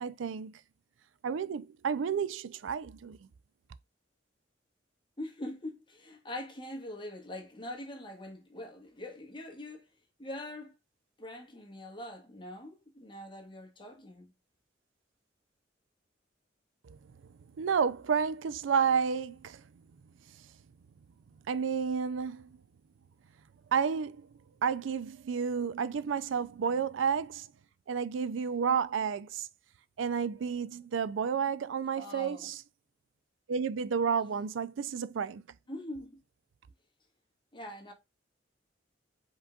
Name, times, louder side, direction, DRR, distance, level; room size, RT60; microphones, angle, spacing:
voice 1, 0.0-0.5 1.2-3.2 16.9-17.0 17.6-19.6 21.5-22.5 23.7-24.3 24.6-27.5 27.9-29.5 30.0-32.6 33.5-35.4, right 6 dB, 90° right, 0.4 m, -31 dB
voice 2, 5.2-9.9 10.2-10.7 11.2-14.3 31.9-32.5 35.7-36.2 37.5-37.9, left 1 dB, 25° left, 1.4 m, -43 dB
5.1 x 3.8 x 2.3 m
head